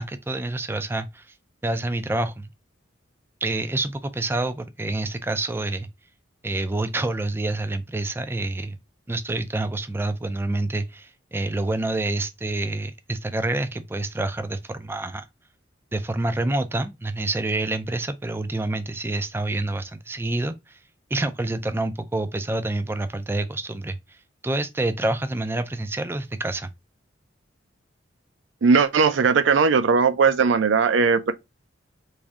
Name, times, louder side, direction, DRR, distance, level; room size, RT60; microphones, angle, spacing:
voice 1, 0.0-1.3 1.6-2.5 3.4-5.9 6.4-8.8 9.1-15.2 15.9-20.8 21.1-24.2 24.4-26.7, right 2 dB, 10° right, 0.3 m, -27 dB
voice 2, 28.6-31.3, right 5 dB, 75° right, 0.5 m, -18 dB
3.3 x 2.6 x 3.5 m
head